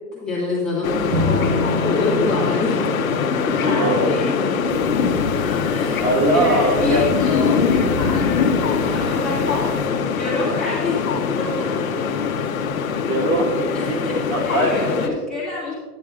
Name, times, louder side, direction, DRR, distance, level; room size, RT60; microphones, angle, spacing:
voice 1, 0.1-1.5 1.8-3.0 3.4-4.3 5.3-6.0 6.3-9.7 10.1-11.7 13.7-14.2 14.4-15.7, left 3 dB, ahead, -11 dB, 1.7 m, -26 dB
sound 1, 0.8-15.1, left 6 dB, 55° left, 0.9 m, -23 dB
Bowed string instrument, 1.1-4.4, left 1 dB, 20° right, 0.9 m, -27 dB
voice 2, 3.6-4.1 5.4-7.0 13.0-14.0 14.3-14.7, right 1 dB, 55° right, 0 dB, 2.1 m, -21 dB
sound 2, 4.7-9.9, left 5 dB, 40° left, 1.3 m, -24 dB
10.0 x 10.0 x 2.4 m, 1.4 s
hypercardioid pair, 165°, 49 cm